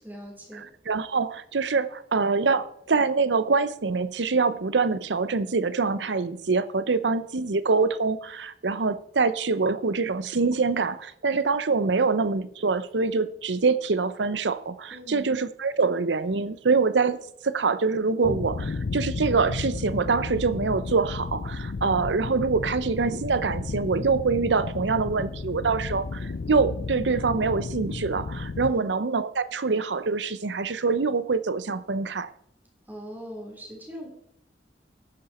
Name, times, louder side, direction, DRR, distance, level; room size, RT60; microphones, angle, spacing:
voice 1, 0.0-0.7 14.9-15.3 28.6-28.9 32.9-34.1, equal, 10° right, 3.7 m, -40 dB
voice 2, 0.5-17.2 17.4-32.3, right 4 dB, 90° right, 0.7 m, -25 dB
sound 1, 18.2-28.7, left 4 dB, 60° left, 0.4 m, -33 dB
12.0 x 9.9 x 4.3 m
head